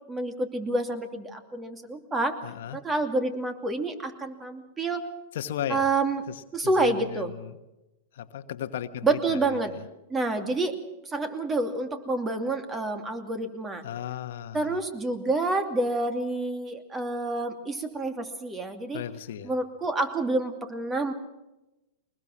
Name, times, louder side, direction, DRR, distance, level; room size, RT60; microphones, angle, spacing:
voice 1, 0.1-2.3 2.7-5.0 5.7-6.2 6.5-7.3 9.0-9.7 10.1-10.8 11.0-13.8 14.5-19.0 19.4-21.1, right 2 dB, 20° right, 7 dB, 2.6 m, -28 dB
voice 2, 2.4-2.8 5.3-5.9 6.3-7.6 8.1-9.8 13.8-14.8 18.9-19.5, left 10 dB, 70° left, 10 dB, 1.2 m, -36 dB
22.5 x 20.5 x 6.1 m, 0.97 s
hypercardioid pair, 115°, 0 cm